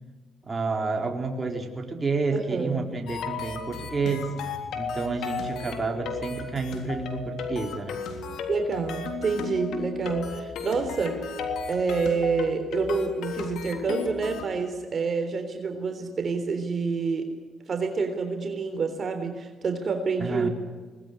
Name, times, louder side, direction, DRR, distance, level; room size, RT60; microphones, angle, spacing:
voice 1, 0.4-4.3 4.7-8.0 20.2-20.5, right 3 dB, 25° right, 3 dB, 3.8 m, -29 dB
voice 2, 2.3-2.9 8.5-11.3 11.7-17.3 17.7-20.5, right 4 dB, 45° right, 6 dB, 3.5 m, -28 dB
sound 1, 3.1-14.5, left 5 dB, 75° left, 3.5 m, -34 dB
23.0 x 20.0 x 9.9 m, 1.4 s
cardioid pair, 90°, 0 cm